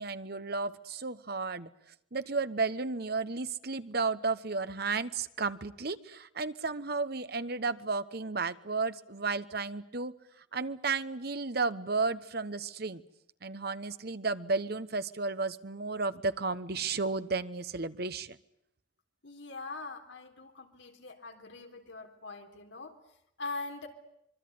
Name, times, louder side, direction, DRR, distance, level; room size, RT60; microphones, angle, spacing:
voice 1, 0.0-1.7 2.1-10.1 10.5-13.0 13.4-18.4, right 4 dB, 55° right, 13 dB, 1.2 m, -33 dB
voice 2, 19.2-22.9 23.4-23.9, left 3 dB, 70° left, 5 dB, 3.9 m, -42 dB
25.5 x 23.5 x 9.6 m, 0.76 s
head